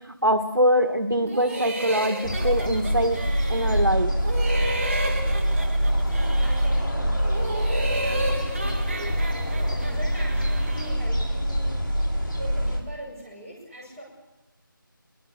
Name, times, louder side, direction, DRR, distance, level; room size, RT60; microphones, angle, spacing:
voice 1, 0.2-3.2 3.5-4.1 9.0-9.1, equal, 80° right, 7 dB, 1.6 m, -23 dB
sound 1, 1.3-3.9 4.2-6.8 7.2-11.0, right 1 dB, 30° right, 2.5 m, -33 dB
sound 2, 2.2-12.8, equal, 65° left, 7.3 m, -25 dB
voice 2, 6.0-11.9 12.3-14.0, equal, 10° right, -6 dB, 6.1 m, -41 dB
26.0 x 23.0 x 6.7 m, 0.98 s
figure-of-eight pair, 165°, 12 cm